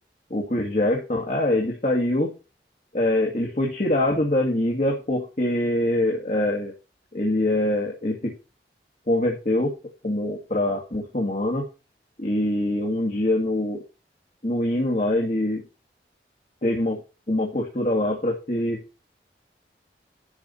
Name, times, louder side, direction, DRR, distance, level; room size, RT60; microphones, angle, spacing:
voice 1, 0.3-2.3 2.9-6.7 7.1-8.3 9.1-9.7 10.0-11.7 12.2-13.8 14.4-15.6 16.6-17.0 17.3-18.8, left 1 dB, 45° left, -1 dB, 2.2 m, -24 dB
12.0 x 4.8 x 7.1 m, 0.31 s
head